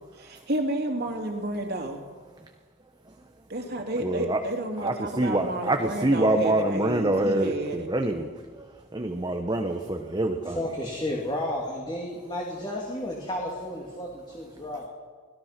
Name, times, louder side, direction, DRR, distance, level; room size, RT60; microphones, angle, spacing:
voice 1, 0.2-2.0 3.5-7.9, right 1 dB, 55° right, 3 dB, 3.0 m, -31 dB
voice 2, 4.0-4.4 4.8-8.3 8.6-8.7 8.9-10.6, right 1 dB, 20° right, 4 dB, 1.1 m, -25 dB
voice 3, 10.4-14.9, left 1 dB, 25° left, -2 dB, 2.7 m, -32 dB
25.0 x 17.5 x 6.0 m, 1.5 s
head